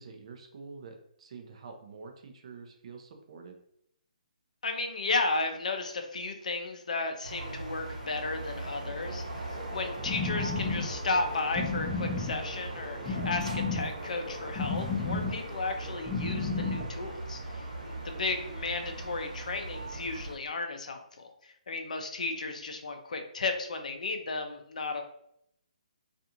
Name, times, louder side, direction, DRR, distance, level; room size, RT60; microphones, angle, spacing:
voice 1, 0.0-3.6, right 4 dB, 50° right, 4 dB, 0.5 m, -47 dB
voice 2, 4.6-25.0, left 3 dB, 65° left, 5 dB, 0.5 m, -34 dB
sound 1, 7.2-20.4, right 2 dB, 70° right, 1.0 m, -40 dB
sound 2, 9.5-16.9, left 3 dB, 15° left, 0.5 m, -34 dB
2.4 x 2.4 x 2.8 m, 0.74 s
hypercardioid pair, 145°, 4 cm